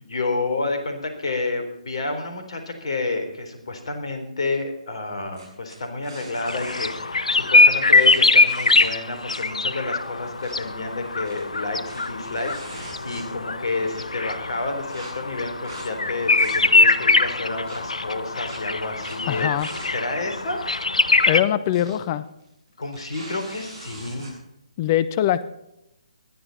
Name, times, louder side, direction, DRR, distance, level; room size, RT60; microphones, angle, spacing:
voice 1, 0.0-19.5 19.9-20.6 22.8-24.3, left 3 dB, 55° left, 6 dB, 3.9 m, -30 dB
sound 1, 5.3-6.9 7.9-9.5 9.8-9.9 10.2-10.6 11.1-13.5 13.9-14.0 14.9-15.1 15.6-15.9 16.2-16.9 17.7-17.8 18.5-18.6 19.0-19.2 19.6-19.9 20.2-20.3 21.4-21.9 22.2-22.4 22.8-24.3, right 2 dB, 40° right, 7.9 m, -42 dB
sound 2, 6.4-21.4, left 3 dB, 70° left, 1.0 m, -22 dB
voice 2, 19.3-19.7 21.3-22.2 24.8-25.5, left 11 dB, 30° left, 15 dB, 0.9 m, -22 dB
20.0 x 12.5 x 4.2 m, 0.85 s
figure-of-eight pair, 140°, 4 cm